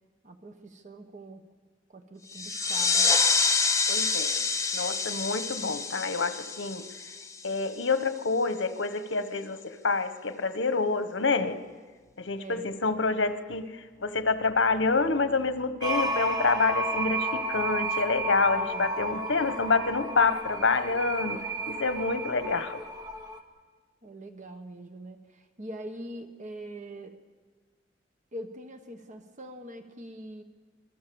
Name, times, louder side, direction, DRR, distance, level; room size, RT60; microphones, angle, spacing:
voice 1, 0.2-1.5 1.9-3.1 12.4-12.7 18.5-19.0 24.0-27.2 28.3-30.4, right 1 dB, 40° right, 7 dB, 1.2 m, -43 dB
sound 1, 2.3-7.6, left 4 dB, 15° left, 1.1 m, -27 dB
voice 2, 3.9-4.4 4.7-6.8 7.4-11.6 12.2-21.4 21.7-22.8, left 4 dB, 75° left, 10 dB, 1.3 m, -27 dB
sound 2, 15.8-23.4, right 1 dB, 25° right, 1.8 m, -32 dB
27.0 x 21.5 x 7.1 m, 1.4 s
head